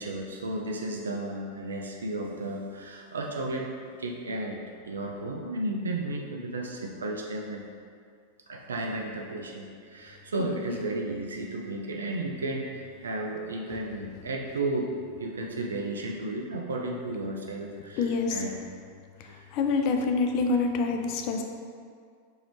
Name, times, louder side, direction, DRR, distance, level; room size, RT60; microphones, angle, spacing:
voice 1, 0.0-3.7 4.0-4.6 4.9-7.6 8.5-18.5 19.2-19.5, right 2 dB, 70° right, 0 dB, 0.3 m, -33 dB
voice 2, 18.0-18.4 19.5-21.4, left 4 dB, 40° left, 4 dB, 0.3 m, -26 dB
2.9 x 2.7 x 3.0 m, 2.2 s
figure-of-eight pair, 90°, 0 cm